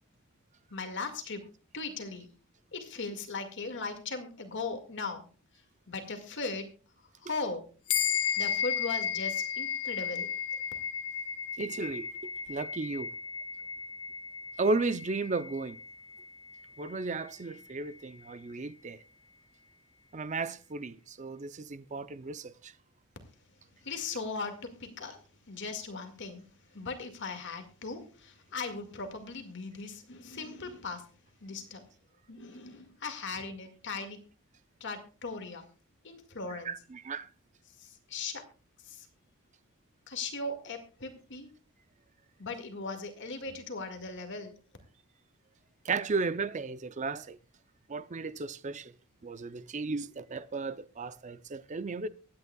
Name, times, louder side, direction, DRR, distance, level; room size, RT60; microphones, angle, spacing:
voice 1, 0.7-1.4 1.7-2.3 2.7-5.2 5.9-6.7 7.2-7.6 8.4-10.3 23.8-25.2 25.5-26.5 26.7-31.0 31.4-31.8 32.3-34.2 34.8-35.7 36.0-36.7 37.7-38.4 38.8-39.1 40.1-41.5 42.4-44.5, left 4 dB, 55° left, 2.0 m, -38 dB
sound 1, 7.9-17.6, left 8 dB, 75° left, 1.2 m, -35 dB
voice 2, 11.6-12.1 12.5-13.1 14.6-15.8 16.8-19.0 20.1-22.7 36.6-37.3 45.8-47.4 47.9-48.9 49.2-52.1, right 3 dB, 35° right, 0.5 m, -34 dB
23.0 x 9.6 x 2.3 m
head